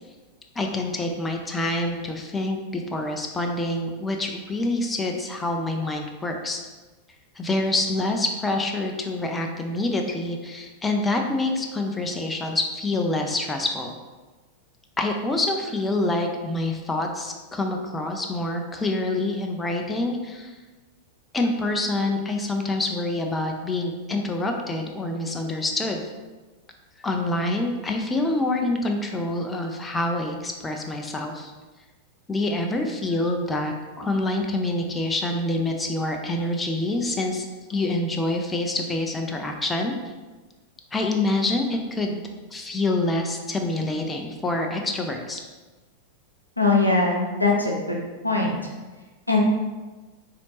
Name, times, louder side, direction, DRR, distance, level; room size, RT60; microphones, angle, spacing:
voice 1, 0.6-6.6 7.4-13.9 15.0-20.5 21.3-26.1 27.0-31.5 32.3-39.9 40.9-42.2 42.5-45.4, left 2 dB, 15° left, 3 dB, 0.4 m, -26 dB
voice 2, 46.6-48.0 48.2-48.6 49.3-49.4, left 3 dB, 85° left, -2 dB, 0.7 m, -21 dB
4.0 x 2.8 x 3.0 m, 1.3 s
figure-of-eight pair, 90°, 0 cm